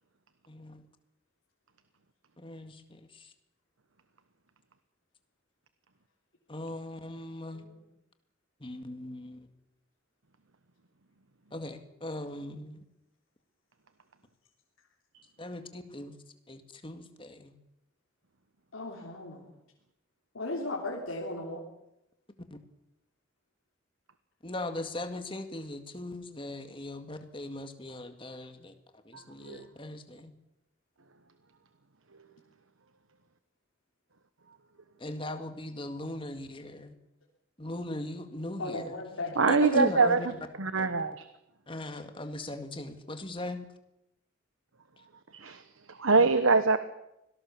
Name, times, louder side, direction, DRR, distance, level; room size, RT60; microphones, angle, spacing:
voice 1, 0.5-0.8 2.4-3.1 6.5-7.6 8.6-9.5 11.5-12.8 15.4-16.2 16.5-17.6 24.4-28.7 29.1-30.3 35.0-36.9 37.6-38.8 39.5-40.3 40.8-40.9 41.7-43.7 46.2-46.3, left 1 dB, 25° left, 7 dB, 1.9 m, -38 dB
voice 2, 7.5-7.9 18.7-19.5 20.3-21.6 38.6-39.5 39.8-40.1, left 2 dB, 85° left, -2 dB, 3.4 m, -37 dB
voice 3, 39.4-40.2 40.6-41.2 45.3-45.6 46.0-46.8, right 4 dB, 90° right, 11 dB, 1.1 m, -23 dB
24.5 x 18.0 x 7.1 m, 0.86 s
head